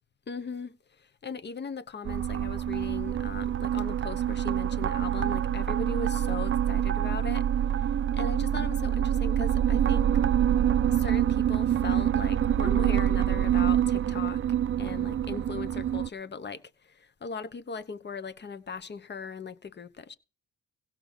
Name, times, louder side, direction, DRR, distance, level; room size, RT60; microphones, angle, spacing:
voice 1, 0.3-7.5 7.7-10.1 10.9-14.4 14.8-20.2, left 5 dB, 35° left, 1.1 m, -39 dB
sound 1, 2.0-16.1, right 10 dB, 40° right, 0.5 m, -26 dB
16.0 x 6.0 x 7.2 m
cardioid pair, 90°, 30 cm